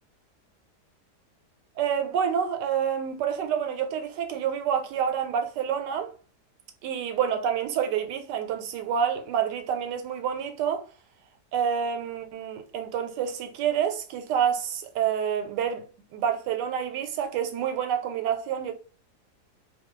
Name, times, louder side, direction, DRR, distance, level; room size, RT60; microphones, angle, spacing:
voice 1, 1.8-6.1 6.8-10.9 11.5-15.8 16.1-18.7, right 8 dB, 90° right, 1.2 m, -28 dB
2.6 x 2.2 x 3.0 m
omnidirectional pair, 1.8 m